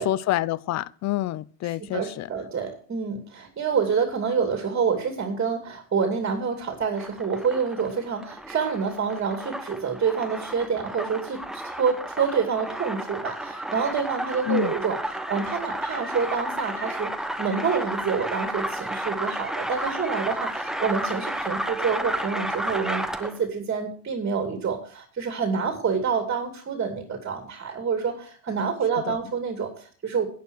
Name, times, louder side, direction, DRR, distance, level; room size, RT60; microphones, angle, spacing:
voice 1, 0.0-2.3 14.5-14.8 29.1-29.2, left 14 dB, 35° left, 0.5 m, -27 dB
voice 2, 1.8-30.3, right 6 dB, 25° right, 2.7 m, -27 dB
sound 1, 6.8-23.5, right 1 dB, ahead, 1.0 m, -32 dB
11.0 x 9.5 x 6.4 m
supercardioid pair, 110°, 49 cm